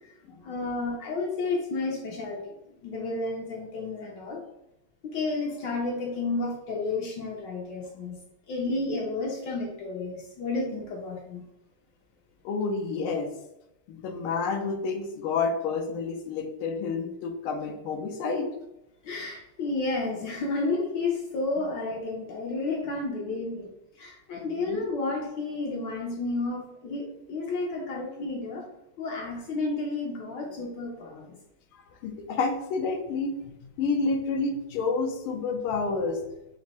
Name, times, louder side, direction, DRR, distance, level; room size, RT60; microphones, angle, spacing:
voice 1, 0.4-2.5 2.8-4.4 5.0-8.2 8.5-11.4 19.0-23.7 24.0-28.6 29.0-31.4, left 3 dB, 70° left, -1 dB, 1.2 m, -31 dB
voice 2, 12.4-13.3 13.9-18.5 24.4-24.8 31.7-33.3 33.8-36.2, left 4 dB, 85° left, 4 dB, 1.5 m, -29 dB
4.0 x 2.6 x 4.1 m, 0.88 s
omnidirectional pair, 2.3 m